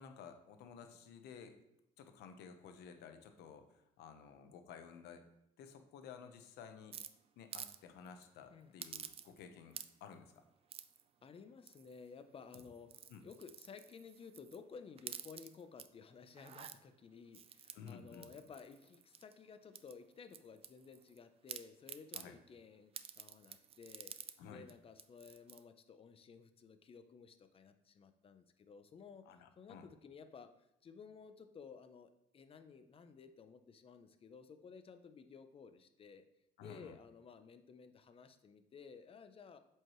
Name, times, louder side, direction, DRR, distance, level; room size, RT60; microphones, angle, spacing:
voice 1, 0.0-1.6 2.0-5.2 5.6-7.0 7.4-10.4 13.1-13.2 17.7-18.4 22.1-22.3 24.4-24.7 29.3-29.9 36.6-36.9, left 6 dB, 80° left, 7 dB, 0.9 m, -54 dB
sound 1, 6.9-7.8 8.1-8.2 8.8-9.4 9.7-10.1 10.7-11.0 11.7-12.1 12.4-14.6 15.0-15.9 16.3-16.8 17.3-19.3 19.7-21.2 21.5-22.3 22.9-24.4 24.7-24.8 25.0-25.6, right 8 dB, 35° right, 0.4 m, -50 dB
voice 2, 11.2-12.9 13.2-24.1 24.5-29.3 29.6-30.5 30.8-36.2 36.6-39.6, left 5 dB, 35° left, 9 dB, 0.6 m, -55 dB
7.7 x 4.6 x 3.1 m, 0.82 s
cardioid pair, 110°, 17 cm